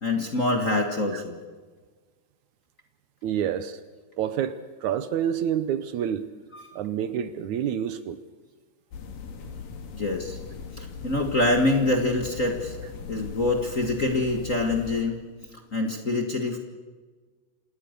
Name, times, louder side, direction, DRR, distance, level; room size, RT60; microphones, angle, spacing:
voice 1, 0.0-1.4 6.5-6.6 9.9-10.4 10.7-12.8 13.1-15.2 15.7-16.6, left 2 dB, 30° left, 3 dB, 1.7 m, -25 dB
voice 2, 3.2-3.8 4.2-6.3 6.8-8.2, right 9 dB, 70° right, 12 dB, 2.1 m, -28 dB
sound 1, 8.9-15.0, left 5 dB, 85° left, 4.0 m, -39 dB
27.5 x 19.0 x 6.8 m, 1.4 s
omnidirectional pair, 3.8 m